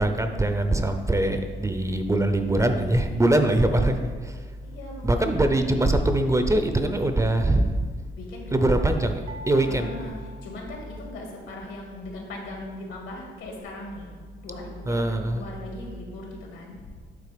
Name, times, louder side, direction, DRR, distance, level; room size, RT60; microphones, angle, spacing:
voice 1, 0.0-4.4 5.0-7.7 8.5-9.9 14.9-15.4, right 1 dB, 15° right, 7 dB, 0.5 m, -23 dB
voice 2, 4.6-5.5 7.4-7.7 8.2-8.8 9.7-17.0, left 2 dB, 75° left, 0 dB, 1.9 m, -39 dB
sound 1, 9.3-11.4, left 2 dB, 80° right, 0.9 m, -45 dB
8.3 x 3.7 x 5.1 m, 1.5 s
cardioid pair, 90°, 20 cm